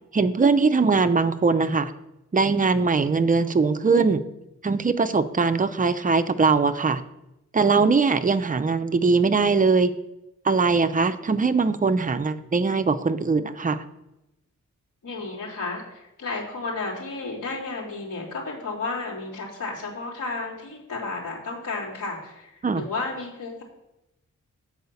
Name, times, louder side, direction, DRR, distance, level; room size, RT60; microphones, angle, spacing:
voice 1, 0.1-1.9 2.3-4.2 4.6-7.0 7.5-9.9 10.5-13.8 22.6-22.8, right 4 dB, 25° right, 10 dB, 0.5 m, -21 dB
voice 2, 15.0-23.6, left 3 dB, 80° left, -8 dB, 3.5 m, -32 dB
7.8 x 4.8 x 6.9 m, 0.90 s
wide cardioid pair, 115°, 30 cm